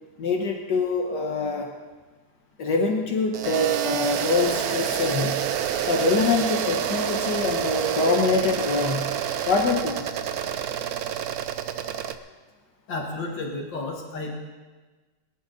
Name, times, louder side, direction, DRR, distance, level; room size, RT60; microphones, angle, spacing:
voice 1, 0.2-1.7 2.6-5.5 5.9-9.2 9.5-10.1, left 3 dB, 70° left, 1 dB, 1.8 m, -24 dB
sound 1, 3.3-12.1, right 9 dB, 60° right, 1.1 m, -28 dB
voice 2, 12.9-14.3, left 2 dB, 90° left, -1 dB, 2.7 m, -32 dB
22.0 x 11.0 x 4.0 m, 1.3 s
omnidirectional pair, 1.9 m